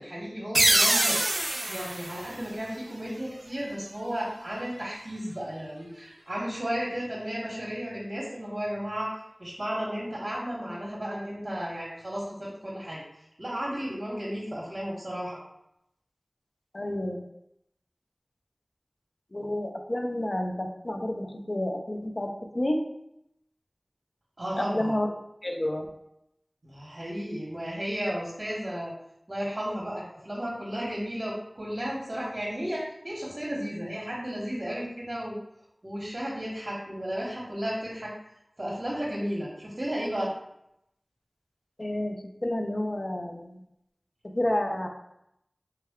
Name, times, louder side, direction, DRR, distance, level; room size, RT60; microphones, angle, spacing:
voice 1, 0.0-9.1 9.4-13.0 13.4-15.4 24.4-25.0 26.6-28.9 29.3-35.4 35.8-38.1 38.6-40.3, equal, 50° right, -5 dB, 0.9 m, -34 dB
sound 1, 0.5-3.1, right 1 dB, 70° right, 0.4 m, -25 dB
voice 2, 16.7-17.3 19.3-22.3 22.5-22.8 24.6-25.1 25.4-25.9 41.8-43.6 44.2-44.9, left 1 dB, 55° left, 2 dB, 0.5 m, -30 dB
3.3 x 2.2 x 3.5 m, 0.80 s
wide cardioid pair, 45°, 0 cm